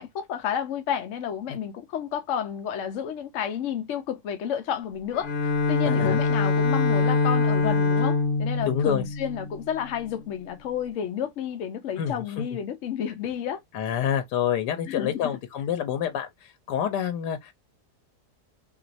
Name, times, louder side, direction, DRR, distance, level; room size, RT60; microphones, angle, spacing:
voice 1, 0.0-5.3 5.7-13.6 14.9-15.3, left 8 dB, 70° left, 0.7 m, -31 dB
Bowed string instrument, 5.1-10.1, left 4 dB, 40° left, 1.0 m, -24 dB
voice 2, 5.8-6.2 8.6-9.0 12.0-12.4 13.7-17.5, left 9 dB, 85° left, 1.2 m, -28 dB
3.0 x 2.9 x 2.6 m
omnidirectional pair, 1.8 m